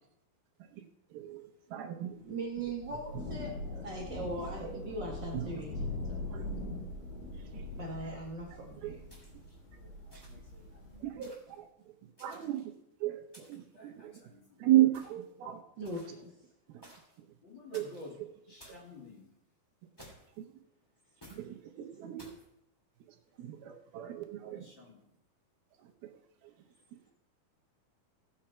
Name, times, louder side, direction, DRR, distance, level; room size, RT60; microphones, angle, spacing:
voice 1, 0.6-2.5 2.9-3.3 4.4-5.5 6.3-6.6 7.5-7.6 8.0-8.1 8.5-9.0 11.0-11.7 12.2-12.7 13.0-14.1 14.6-15.6 16.0-16.2 16.7-16.8 17.7-17.9 18.2-18.3 18.6-18.7 20.4-20.5 21.3-22.3 23.4-24.7 25.8-25.9 26.4-26.5, right 14 dB, 75° right, 4 dB, 2.8 m, -34 dB
voice 2, 2.2-5.7 6.1-6.2 7.7-8.9 15.8-16.3, right 2 dB, 60° right, -3 dB, 1.2 m, -40 dB
Thunder / Rain, 2.6-11.2, left 2 dB, 90° left, 5.5 m, -42 dB
sound 1, 9.1-9.6 10.1-10.5 11.2-11.6 12.2-12.7 13.3-13.7 14.9-15.3 15.8-16.3 16.8-17.2 17.7-18.1 18.6-18.9 20.0-20.4 21.2-21.5 22.2-22.5, equal, 10° left, 2.0 m, -56 dB
voice 3, 9.7-11.0 13.7-14.7 16.1-16.3 17.4-18.1 18.5-19.3 24.5-25.0, left 3 dB, 35° left, -4 dB, 3.0 m, -53 dB
17.0 x 7.3 x 4.4 m, 0.83 s
omnidirectional pair, 4.4 m